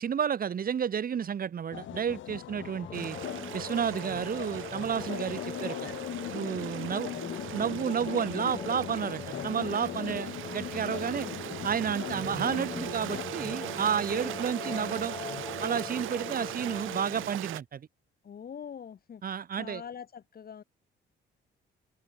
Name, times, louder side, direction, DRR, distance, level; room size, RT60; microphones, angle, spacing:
voice 1, 0.0-3.2 3.5-5.8 6.3-7.1 7.5-11.3 11.6-15.1 15.6-17.9 19.2-19.8, right 8 dB, 45° right, 1.3 m, -31 dB
sound 1, 1.7-13.3, left 12 dB, 75° left, 2.0 m, -40 dB
sound 2, 2.8-17.3, left 5 dB, 25° left, 0.6 m, -42 dB
Stream, 2.9-17.6, right 15 dB, 90° right, 2.7 m, -40 dB
voice 2, 6.7-7.3 10.0-10.3 14.2-14.4 18.2-19.2 19.6-20.6, left 7 dB, 50° left, 2.3 m, -44 dB
open air
cardioid pair, 90°, 20 cm